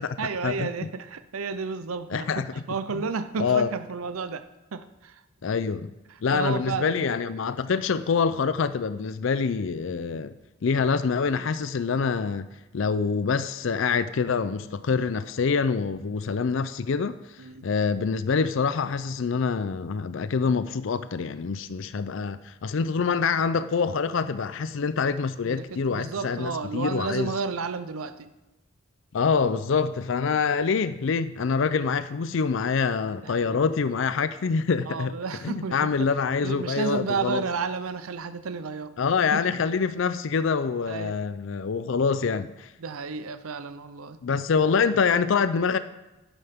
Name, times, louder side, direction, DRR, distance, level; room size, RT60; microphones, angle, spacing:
voice 1, 0.2-4.4 4.7-5.2 6.1-7.0 17.4-17.7 25.4-28.3 30.4-30.5 33.2-33.6 34.9-36.1 36.4-39.0 39.3-39.4 40.9-41.2 42.8-44.2, right 5 dB, 85° right, 0.6 m, -32 dB
voice 2, 2.1-2.5 2.9-3.0 3.4-3.7 5.4-5.9 6.2-10.4 10.6-12.5 12.7-27.3 29.1-35.1 35.4-37.4 39.0-42.7 44.2-45.8, left 5 dB, 65° left, 0.4 m, -25 dB
11.5 x 11.0 x 3.6 m
head